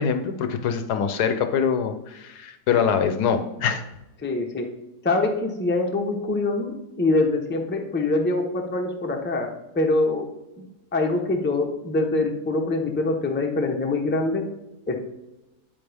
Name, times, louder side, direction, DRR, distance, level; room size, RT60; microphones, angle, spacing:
voice 1, 0.0-3.8, left 7 dB, 70° left, 8 dB, 1.2 m, -24 dB
voice 2, 4.2-4.7 5.0-10.3 10.6-10.7 10.9-14.4 14.9-15.0, left 2 dB, 10° left, 2 dB, 0.6 m, -24 dB
8.8 x 8.6 x 3.5 m, 0.95 s
omnidirectional pair, 1.8 m